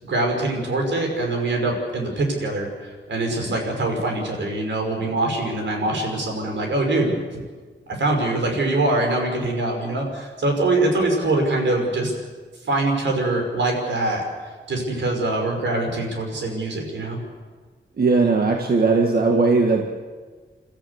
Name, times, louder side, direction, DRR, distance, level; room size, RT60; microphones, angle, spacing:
voice 1, 0.0-7.2 7.9-12.1 12.6-14.2 14.7-17.2, right 2 dB, 85° right, 2 dB, 5.4 m, -23 dB
voice 2, 18.0-20.0, right 3 dB, 55° right, 2 dB, 1.8 m, -19 dB
29.5 x 13.5 x 8.2 m, 1.5 s
wide cardioid pair, 130°, 19 cm